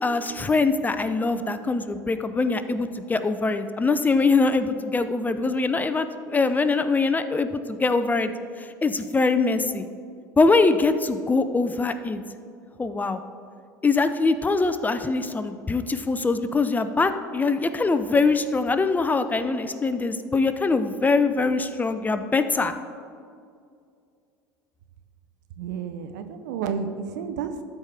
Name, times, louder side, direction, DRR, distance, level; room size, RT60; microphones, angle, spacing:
voice 1, 0.0-8.3 8.6-9.8 10.4-12.2 12.8-13.2 13.8-22.7, left 3 dB, 15° left, 10 dB, 0.5 m, -23 dB
voice 2, 25.6-27.6, right 6 dB, 65° right, 9 dB, 0.6 m, -31 dB
13.0 x 4.8 x 3.5 m, 2.3 s
hypercardioid pair, 75°, 10 cm